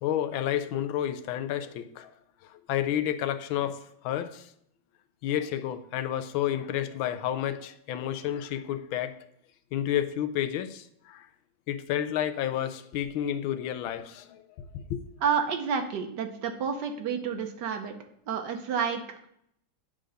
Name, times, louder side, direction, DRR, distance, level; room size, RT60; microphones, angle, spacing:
voice 1, 0.0-2.1 2.4-4.5 5.2-9.3 9.7-11.3 11.7-15.0, left 11 dB, 80° left, 1.4 m, -31 dB
voice 2, 15.2-17.9 18.3-19.3, right 6 dB, 60° right, 1.4 m, -30 dB
9.0 x 3.7 x 6.4 m
omnidirectional pair, 2.3 m